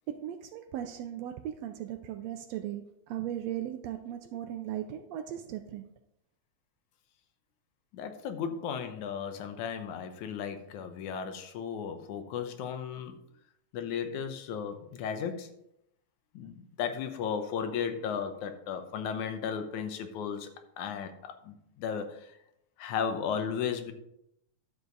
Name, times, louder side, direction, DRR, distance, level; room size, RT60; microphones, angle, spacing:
voice 1, 0.1-5.9, right 11 dB, 75° right, 1.6 m, -37 dB
voice 2, 7.9-13.2 13.7-15.5 16.3-20.5 20.8-22.4 22.8-23.9, left 7 dB, 85° left, 2.3 m, -35 dB
11.0 x 7.0 x 4.0 m
omnidirectional pair, 3.4 m